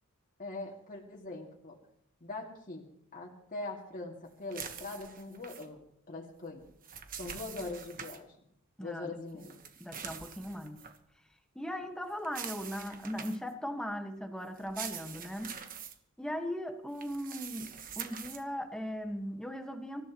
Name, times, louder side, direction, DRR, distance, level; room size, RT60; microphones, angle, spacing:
voice 1, 0.4-1.8 2.2-2.9 3.1-6.7 7.2-8.3 8.8-9.6, left 2 dB, 40° left, -1 dB, 2.3 m, -42 dB
sound 1, 4.5-5.7 6.6-8.2 9.4-11.0 12.2-13.5 14.6-15.9 16.9-18.4, right 7 dB, 40° right, 1.3 m, -44 dB
voice 2, 8.8-9.5 9.8-10.8 11.5-15.6 16.2-20.0, equal, 5° left, 4 dB, 1.5 m, -38 dB
26.0 x 14.5 x 3.1 m, 0.73 s
head